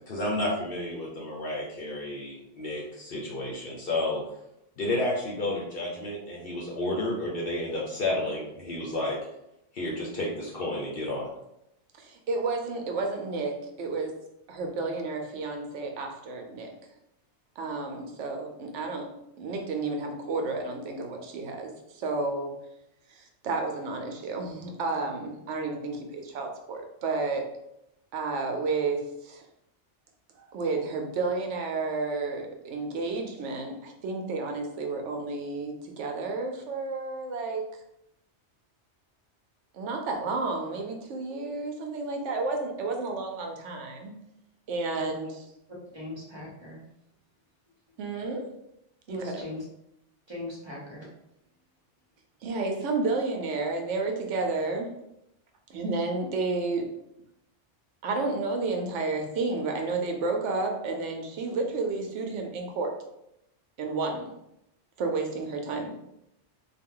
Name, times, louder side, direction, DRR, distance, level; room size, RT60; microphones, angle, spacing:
voice 1, 0.1-4.2 4.8-9.2 9.7-11.3, left 1 dB, 55° left, -3 dB, 0.9 m, -31 dB
voice 2, 12.0-14.2 14.5-16.7 17.6-22.5 23.1-27.5 28.1-29.4 30.4-37.6 39.7-44.1 44.7-45.4 48.0-48.5 49.1-49.4 52.4-54.9 55.7-56.9 58.0-62.9 63.8-64.3 65.0-65.9, right 3 dB, 80° right, 3 dB, 1.0 m, -31 dB
voice 3, 45.7-46.8 49.1-49.6 50.3-51.1, left 1 dB, 25° right, -4 dB, 1.0 m, -39 dB
3.7 x 2.2 x 3.7 m, 0.82 s
omnidirectional pair, 1.2 m